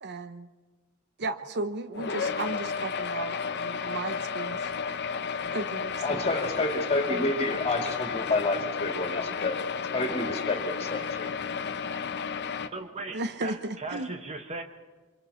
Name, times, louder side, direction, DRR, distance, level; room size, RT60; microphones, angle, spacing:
voice 1, 0.0-0.5 1.2-4.7 5.3-6.2 7.1-7.3 13.1-14.1, right 2 dB, 50° right, 10 dB, 0.8 m, -35 dB
sound 1, 1.9-12.7, left 6 dB, 50° left, 0.9 m, -32 dB
voice 2, 6.0-9.6 9.9-11.3, left 2 dB, 30° left, 2 dB, 2.8 m, -29 dB
voice 3, 12.7-14.6, right 3 dB, 30° right, 6 dB, 1.1 m, -37 dB
29.0 x 25.0 x 4.4 m, 1.3 s
head